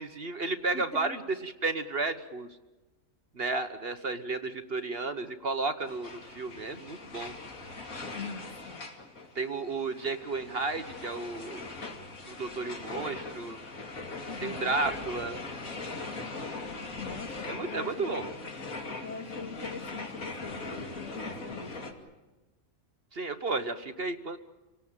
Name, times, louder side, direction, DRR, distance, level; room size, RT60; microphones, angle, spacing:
voice 1, 0.0-2.5 3.3-7.3 9.3-11.7 12.3-13.6 14.4-15.4 17.4-18.2 23.1-24.4, right 3 dB, 45° right, 10 dB, 1.3 m, -33 dB
voice 2, 0.7-1.2 8.1-8.8 14.3-14.8 17.0-18.2 19.0-21.7, left 4 dB, 60° left, 4 dB, 3.0 m, -42 dB
sound 1, 5.9-21.9, left 3 dB, 80° left, 3.0 m, -40 dB
29.0 x 18.5 x 8.9 m, 1.1 s
omnidirectional pair, 1.4 m